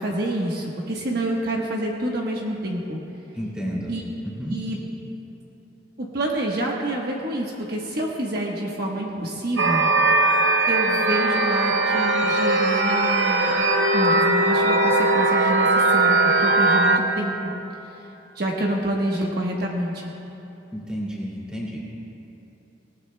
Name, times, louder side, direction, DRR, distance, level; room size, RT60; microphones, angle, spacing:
voice 1, 0.0-3.0 3.9-4.0 4.5-4.8 6.0-9.8 10.7-13.5 13.9-17.5 18.3-20.1, right 1 dB, 55° right, -2 dB, 1.2 m, -27 dB
voice 2, 3.3-3.9 4.4-4.6 20.7-21.8, equal, 5° right, -5 dB, 2.5 m, -31 dB
sound 1, 9.6-17.0, right 2 dB, 75° right, 0.9 m, -19 dB
19.5 x 18.5 x 2.2 m, 2.9 s
head